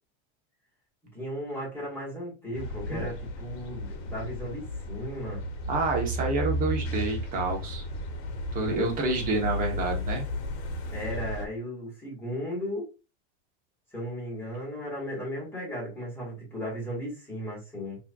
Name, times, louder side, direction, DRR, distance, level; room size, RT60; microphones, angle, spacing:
voice 1, 1.1-5.4 10.9-12.9 13.9-18.0, equal, 5° left, -5 dB, 2.0 m, -36 dB
sound 1, 2.5-11.5, equal, 80° left, 1.1 m, -33 dB
voice 2, 5.7-7.8 8.5-10.3, right 2 dB, 25° right, 1 dB, 0.9 m, -28 dB
4.7 x 2.8 x 2.3 m, 0.29 s
supercardioid pair, 160°, 32 cm